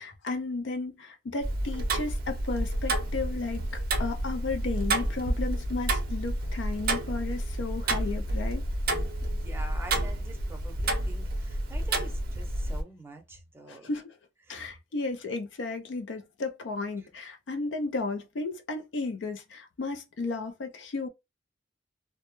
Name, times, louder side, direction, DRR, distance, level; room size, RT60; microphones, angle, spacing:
voice 1, 0.0-8.6 13.7-14.2 14.5-21.1, left 3 dB, 70° left, 0.4 m, -34 dB
Tick-tock, 1.4-12.8, right 1 dB, 55° right, 0.5 m, -30 dB
voice 2, 9.2-13.9 14.4-14.8 17.0-17.1, right 2 dB, 15° right, 0.6 m, -46 dB
2.1 x 2.0 x 2.9 m
head